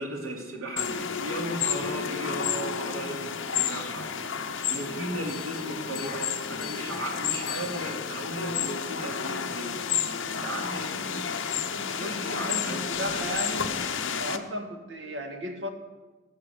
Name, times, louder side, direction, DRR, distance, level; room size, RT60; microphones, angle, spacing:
voice 1, 0.0-4.1 4.7-9.8 10.0-11.7 11.9-13.3, right 1 dB, 90° right, 0 dB, 2.9 m, -36 dB
sound 1, 0.8-14.4, left 7 dB, 70° left, 0.9 m, -31 dB
Bell, 5.3-8.3, left 10 dB, 45° left, 3.2 m, -44 dB
voice 2, 12.0-13.7 14.1-15.7, equal, 60° right, 4 dB, 1.6 m, -35 dB
19.0 x 7.2 x 6.4 m, 1.3 s
head